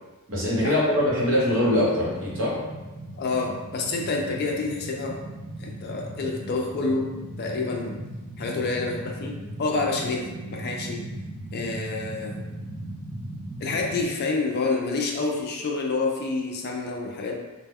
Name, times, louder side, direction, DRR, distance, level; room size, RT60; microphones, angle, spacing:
voice 1, 0.3-2.5, left 1 dB, 60° right, -7 dB, 0.9 m, -22 dB
sound 1, 0.9-14.0, right 1 dB, 20° right, 0.5 m, -38 dB
voice 2, 3.1-5.2 5.6-7.1 7.4-8.0 8.4-11.0 11.5-12.4 13.6-17.4, left 3 dB, 45° left, 0 dB, 0.4 m, -28 dB
2.1 x 2.1 x 3.5 m, 1.1 s
head